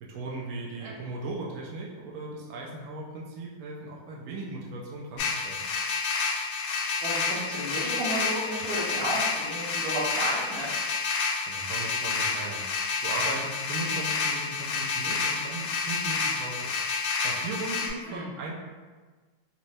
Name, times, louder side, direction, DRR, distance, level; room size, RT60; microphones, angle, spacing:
voice 1, 0.0-5.6 11.5-16.7 17.2-18.5, right 2 dB, 80° right, -4 dB, 0.8 m, -37 dB
sound 1, 5.2-17.9, left 5 dB, 85° left, 1.3 m, -29 dB
voice 2, 7.0-10.8 18.1-18.3, right 1 dB, 60° right, -6 dB, 1.1 m, -32 dB
4.2 x 2.0 x 2.6 m, 1.4 s
omnidirectional pair, 2.1 m